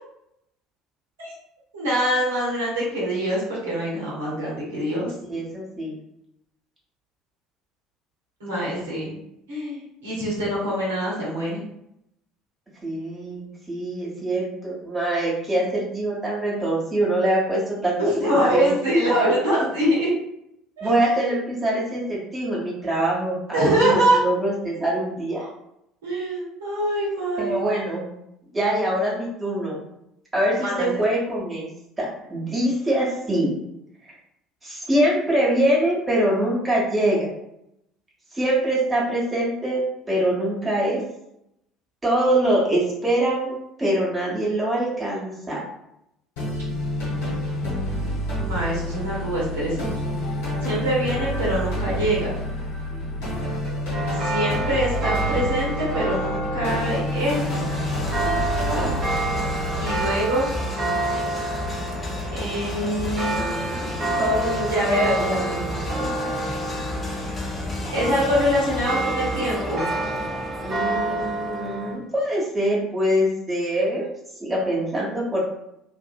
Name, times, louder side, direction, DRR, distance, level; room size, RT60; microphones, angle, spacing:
voice 1, 1.7-5.1 8.4-9.1 9.5-11.6 18.0-20.1 20.8-21.3 23.5-24.2 26.0-27.6 30.6-31.0 47.6-48.1 48.4-49.9 50.6-52.4 54.1-57.4 59.8-60.5 62.3-65.7 67.9-69.8, equal, 70° right, -7 dB, 1.0 m, -24 dB
voice 2, 5.2-5.9 12.8-18.7 20.8-25.5 27.4-28.0 28.5-29.8 30.3-31.7 32.0-33.6 34.6-37.3 38.3-39.8 40.1-41.0 42.0-43.5 43.8-45.6 52.9-53.5 58.2-58.9 64.2-66.5 70.6-74.1 74.4-75.4, right 1 dB, 15° right, -5 dB, 1.1 m, -24 dB
sound 1, 46.4-60.1, equal, 65° left, 1.4 m, -28 dB
sound 2, 53.9-72.0, right 2 dB, 40° right, 0.9 m, -29 dB
sound 3, 57.1-71.8, left 2 dB, 25° left, 0.5 m, -32 dB
2.6 x 2.6 x 2.4 m, 0.79 s
figure-of-eight pair, 60°, 0 cm